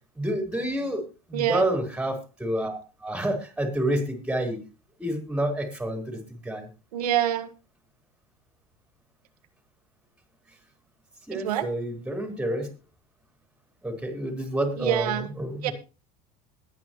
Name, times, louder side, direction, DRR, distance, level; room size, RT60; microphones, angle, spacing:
voice 1, 0.2-1.0 1.3-4.6 5.0-6.7 11.3-12.7 13.8-15.7, right 1 dB, 5° right, 4 dB, 4.1 m, -29 dB
voice 2, 1.3-1.7 6.9-7.5 11.3-11.7 14.8-15.3 15.6-15.7, right 11 dB, 90° right, 10 dB, 1.5 m, -26 dB
21.5 x 9.2 x 3.0 m, 0.31 s
supercardioid pair, 110°, 19 cm